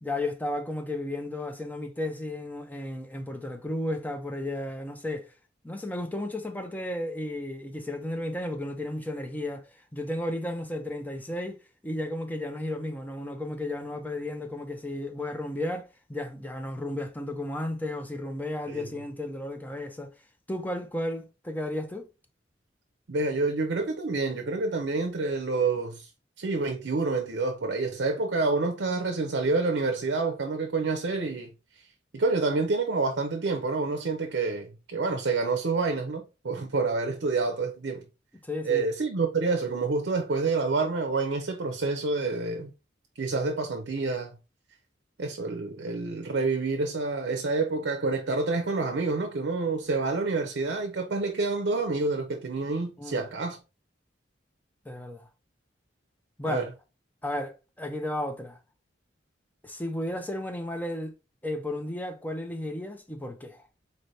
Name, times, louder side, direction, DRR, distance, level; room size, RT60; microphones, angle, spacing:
voice 1, 0.0-5.3 5.6-9.6 9.9-20.1 20.5-22.1 38.4-38.9 53.0-53.3 54.9-55.3 56.4-56.7 57.2-58.6 59.6-61.2 61.4-63.6, left 1 dB, 10° left, 0.5 m, -33 dB
voice 2, 18.7-19.0 23.1-26.1 26.4-31.5 32.1-38.0 38.6-42.7 43.2-44.3 45.2-53.6 56.5-56.7, right 3 dB, 70° right, 0.6 m, -28 dB
4.2 x 3.3 x 2.7 m
head